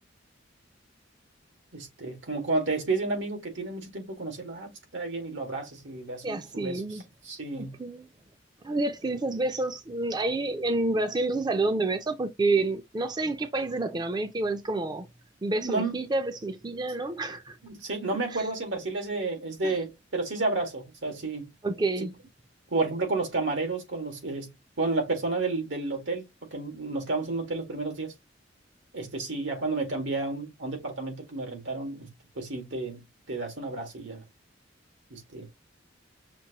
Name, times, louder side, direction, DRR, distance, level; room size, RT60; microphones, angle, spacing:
voice 1, 1.7-7.0 7.2-7.8 15.5-16.0 17.6-21.5 22.7-26.3 26.5-28.1 28.9-34.2 35.1-35.5, right 3 dB, 90° right, 1.9 m, -31 dB
voice 2, 6.2-7.0 7.5-8.1 8.6-15.1 15.4-17.6 18.3-18.5 19.6-19.8 21.6-22.1, right 2 dB, 25° right, 0.4 m, -29 dB
6.0 x 2.6 x 2.9 m
head